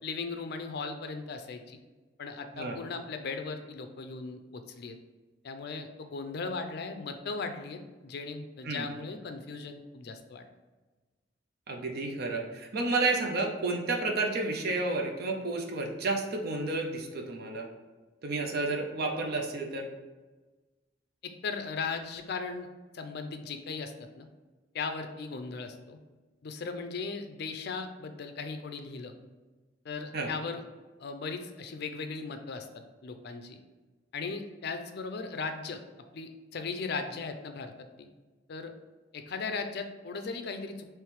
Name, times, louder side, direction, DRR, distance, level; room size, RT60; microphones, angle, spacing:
voice 1, 0.0-1.8 2.2-5.0 5.4-10.5 21.2-22.7 22.9-24.3 24.7-26.0 26.4-29.1 29.8-30.6 31.0-32.7 33.0-33.6 34.1-35.8 36.1-38.1 38.5-38.7 39.1-40.9, left 4 dB, 60° left, 7 dB, 0.5 m, -37 dB
voice 2, 11.7-17.7 18.2-19.9 30.1-30.3, right 3 dB, 55° right, 2 dB, 0.6 m, -31 dB
3.4 x 3.1 x 4.6 m, 1.3 s
head